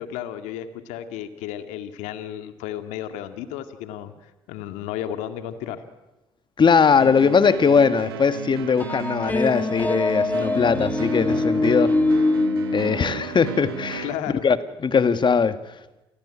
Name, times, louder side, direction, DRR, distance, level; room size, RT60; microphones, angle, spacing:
voice 1, 0.0-5.8 14.0-14.4, left 11 dB, 75° left, 2.2 m, -33 dB
voice 2, 6.6-12.0 12.7-14.1 14.4-14.6 14.8-15.6, left 6 dB, 40° left, 1.9 m, -20 dB
sound 1, 7.0-14.1, right 11 dB, 90° right, 1.2 m, -35 dB
sound 2, 8.8-14.0, left 2 dB, 15° left, 2.0 m, -24 dB
28.0 x 20.0 x 10.0 m
hypercardioid pair, 50°, 12 cm